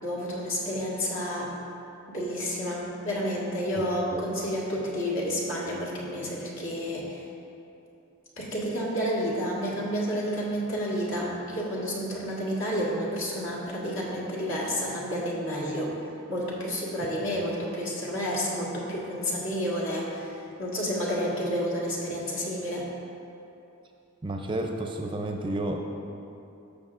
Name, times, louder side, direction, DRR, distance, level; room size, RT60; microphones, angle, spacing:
voice 1, 0.0-1.5 2.1-7.2 8.4-15.9 16.3-20.3 20.6-22.9, equal, 65° left, -5 dB, 1.8 m, -30 dB
voice 2, 24.2-25.8, right 1 dB, 25° right, 3 dB, 0.5 m, -31 dB
13.0 x 6.5 x 2.5 m, 2.7 s
head